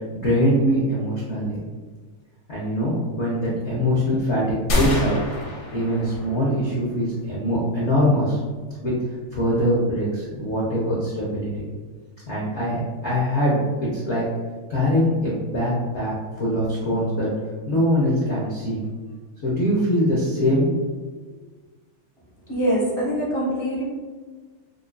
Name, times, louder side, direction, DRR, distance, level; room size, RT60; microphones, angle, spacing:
voice 1, 0.1-1.6 2.5-5.2 5.7-8.4 8.8-8.9 9.3-11.6 12.3-14.3 14.7-17.3 17.7-18.8 19.4-20.7, equal, 85° left, -6 dB, 0.6 m, -23 dB
sound 1, 4.7-6.6, left 2 dB, 65° left, 1.3 m, -26 dB
voice 2, 22.5-23.8, equal, 30° right, -9 dB, 0.5 m, -23 dB
5.3 x 2.5 x 2.2 m, 1.4 s
omnidirectional pair, 2.4 m